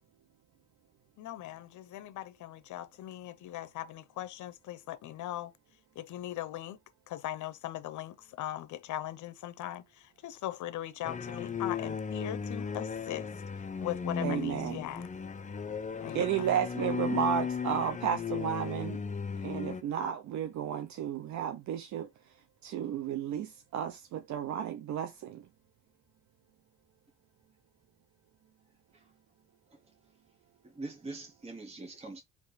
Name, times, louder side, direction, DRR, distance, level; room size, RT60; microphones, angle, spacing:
voice 1, 1.2-5.5 6.0-6.8 7.1-13.3 13.8-15.1 16.0-16.3, left 13 dB, 75° left, 0.7 m, -39 dB
sound 1, 11.0-19.8, left 6 dB, 25° left, 0.6 m, -36 dB
voice 2, 14.2-14.8 16.1-19.0 19.4-22.1 22.6-25.4, right 9 dB, 70° right, 0.6 m, -33 dB
voice 3, 30.6-32.2, right 2 dB, 20° right, 1.1 m, -43 dB
3.6 x 3.0 x 4.1 m
cardioid pair, 90°, 30 cm